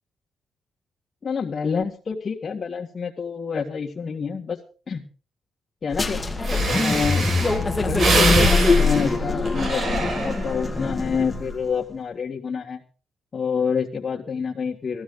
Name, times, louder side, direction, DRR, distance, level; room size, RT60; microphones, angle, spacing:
voice 1, 1.2-4.6 4.9-5.1 5.8-6.2 6.7-7.3 7.8-10.0 10.2-12.8 13.3-15.0, left 6 dB, 35° left, -3 dB, 2.0 m, -27 dB
sound 1, 5.9-11.5, left 3 dB, 15° left, 2.1 m, -23 dB
Breathing, 6.1-6.2 6.4-10.7 11.2-11.5, right 3 dB, 55° right, 7.4 m, -25 dB
18.5 x 14.5 x 3.8 m, 0.37 s
cardioid pair, 125°, 0 cm